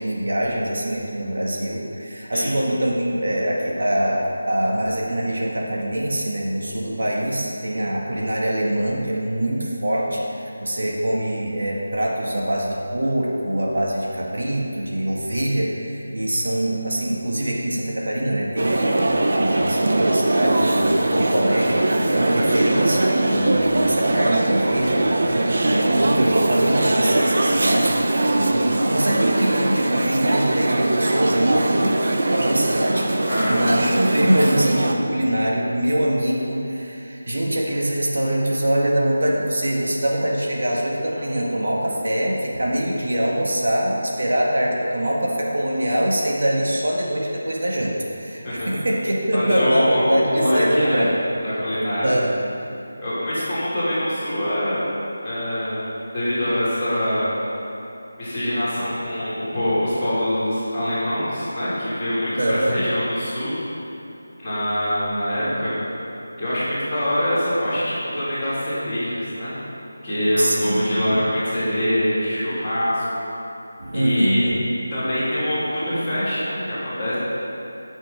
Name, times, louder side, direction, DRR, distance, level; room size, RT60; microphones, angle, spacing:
voice 1, 0.0-28.0 28.3-51.2 52.0-52.4 53.3-53.5 62.4-62.8 70.4-71.2 73.8-74.6, right 1 dB, 65° right, -3 dB, 1.9 m, -23 dB
sound 1, 18.6-34.9, right 2 dB, 50° right, 0.9 m, -21 dB
voice 2, 33.3-33.6 48.4-48.7 49.3-51.0 51.4-52.1 53.0-54.8 55.2-57.3 58.2-63.5 64.4-65.7 66.4-69.5 70.0-73.2 73.9-74.5 74.9-77.2, equal, ahead, -24 dB, 3.1 m, -24 dB
17.0 x 6.5 x 5.2 m, 2.8 s
figure-of-eight pair, 180°, 0 cm